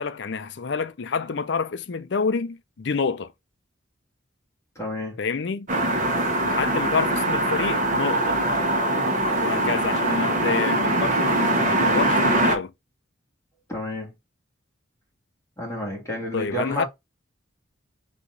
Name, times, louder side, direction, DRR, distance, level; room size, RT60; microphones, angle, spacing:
voice 1, 0.0-3.3 5.2-5.7 6.4-8.4 9.4-12.7 16.3-16.8, left 5 dB, 60° left, 0.5 m, -28 dB
voice 2, 4.8-5.2 13.7-14.1 15.6-16.9, left 1 dB, 15° left, 1.7 m, -30 dB
sound 1, 5.7-12.5, right 1 dB, 40° right, 1.0 m, -22 dB
4.0 x 3.0 x 3.7 m
head